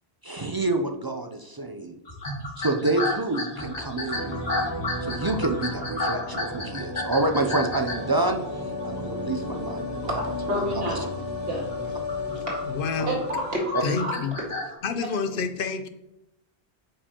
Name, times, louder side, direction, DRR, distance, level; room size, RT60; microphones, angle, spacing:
voice 1, 0.2-1.9 2.6-4.3 5.0-8.4 8.8-10.1 10.9-11.0 13.7-13.8, right 2 dB, 40° right, 4 dB, 0.3 m, -27 dB
sound 1, 2.1-8.7 9.3-9.7 10.0-10.4 10.8-10.9 11.5-14.7, left 2 dB, 40° left, 1.5 m, -32 dB
sound 2, 4.1-13.6, left 2 dB, 25° right, 2.1 m, -33 dB
voice 2, 10.2-11.1 11.5-11.8 12.3-12.4 13.1-14.1, equal, 65° right, -2 dB, 2.1 m, -29 dB
voice 3, 12.6-13.2 13.8-14.4 14.8-15.9, left 5 dB, 60° left, 9 dB, 0.8 m, -28 dB
8.7 x 5.1 x 2.9 m, 0.89 s
omnidirectional pair, 1.1 m